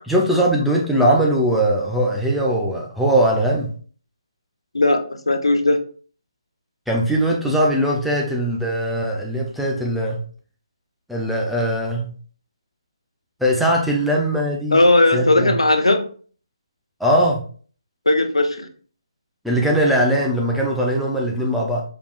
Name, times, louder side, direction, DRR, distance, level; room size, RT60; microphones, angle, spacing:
voice 1, 0.0-3.7 6.9-10.2 11.1-12.1 13.4-14.8 15.1-15.5 17.0-17.4 19.4-21.8, right 1 dB, ahead, -3 dB, 0.5 m, -20 dB
voice 2, 4.7-5.8 14.7-16.1 18.1-18.7, left 2 dB, 80° left, 7 dB, 0.7 m, -17 dB
4.8 x 3.4 x 2.3 m, 0.42 s
figure-of-eight pair, 150°, 3 cm